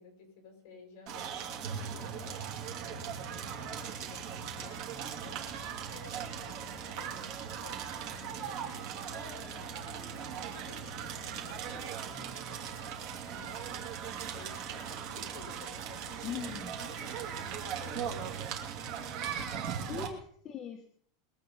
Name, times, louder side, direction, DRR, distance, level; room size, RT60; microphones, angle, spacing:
voice 1, 0.0-18.5 18.8-19.9, left 4 dB, 45° left, 3 dB, 6.4 m, -54 dB
Crackle, 1.1-20.1, right 7 dB, 35° right, 2.7 m, -39 dB
voice 2, 16.2-16.8 19.9-20.9, left 7 dB, 20° left, 2 dB, 1.2 m, -40 dB
22.5 x 8.6 x 5.5 m, 0.62 s
supercardioid pair, 180°, 2 cm